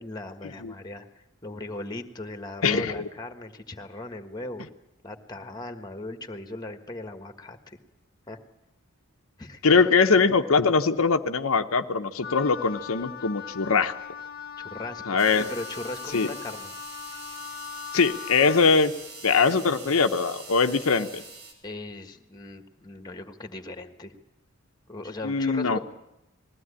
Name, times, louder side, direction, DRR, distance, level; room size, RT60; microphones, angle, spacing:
voice 1, 0.0-4.7 5.0-7.8 8.3-8.4 9.4-10.1 14.6-16.7 21.6-24.1 24.9-25.8, left 2 dB, 20° left, 7 dB, 1.5 m, -38 dB
voice 2, 2.6-3.1 9.6-13.9 15.1-15.5 16.1-16.3 17.9-18.9 19.2-21.2 25.2-25.8, left 4 dB, 80° left, 6 dB, 0.9 m, -22 dB
Wind instrument woodwind instrument, 12.2-18.7, left 8 dB, 45° left, 1.0 m, -40 dB
sound 1, 15.2-21.5, right 3 dB, 85° right, 5.9 m, -44 dB
20.5 x 15.5 x 9.9 m, 0.90 s
head